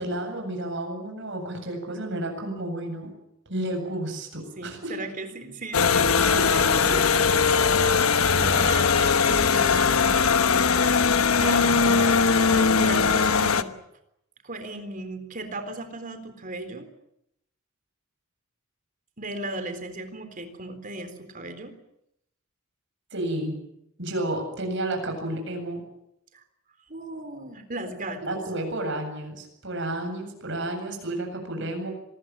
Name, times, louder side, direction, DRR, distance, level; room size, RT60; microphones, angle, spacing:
voice 1, 0.0-3.1 3.5-5.0 6.1-7.2 8.5-8.7 23.1-23.6 24.0-25.8 28.2-31.9, right 1 dB, 55° right, 4 dB, 8.0 m, -31 dB
voice 2, 4.6-6.8 8.3-10.3 11.4-12.1 12.4-13.7 14.4-16.9 19.2-21.7 26.3-26.4 26.9-28.2, right 2 dB, 40° right, 9 dB, 3.8 m, -36 dB
sound 1, 5.7-13.6, left 5 dB, 80° left, 1.2 m, -20 dB
26.0 x 20.5 x 9.0 m, 0.79 s
head